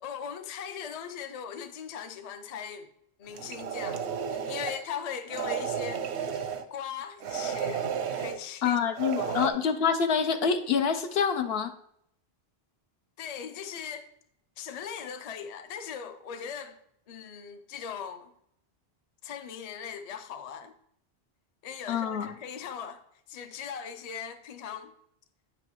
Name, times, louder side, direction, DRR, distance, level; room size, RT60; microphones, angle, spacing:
voice 1, 0.0-2.9 3.2-6.0 6.3-7.9 8.2-8.8 9.2-9.4 13.2-14.1 14.6-16.8 17.1-18.3 19.2-20.8 21.6-23.0 23.3-24.9, left 7 dB, 45° left, 0.6 m, -39 dB
sound 1, 3.3-4.8 5.3-6.7 7.2-8.4 8.9-9.5, right 7 dB, 90° right, 0.9 m, -32 dB
voice 2, 8.6-11.7 21.9-22.3, left 6 dB, 75° left, 0.9 m, -26 dB
8.8 x 6.1 x 3.0 m
omnidirectional pair, 1.1 m